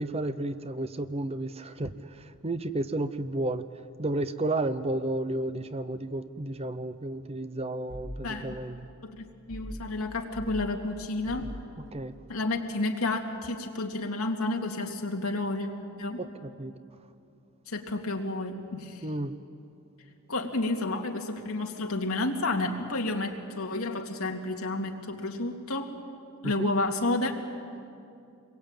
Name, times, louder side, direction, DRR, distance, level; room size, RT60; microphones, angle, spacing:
voice 1, 0.0-3.7 4.0-8.8 11.9-12.1 16.2-16.7 19.0-19.3 26.4-26.7, right 2 dB, 30° right, 12 dB, 0.8 m, -32 dB
sound 1, 7.9-8.2 9.5-9.8 10.3-10.6 11.3-11.6, equal, 15° right, 7.1 m, -39 dB
voice 2, 8.2-8.5 9.0-11.5 12.3-15.7 16.0-16.2 17.7-19.1 20.3-26.0 26.4-27.3, left 2 dB, 75° left, 2 dB, 2.5 m, -31 dB
27.0 x 22.0 x 9.0 m, 2.6 s
head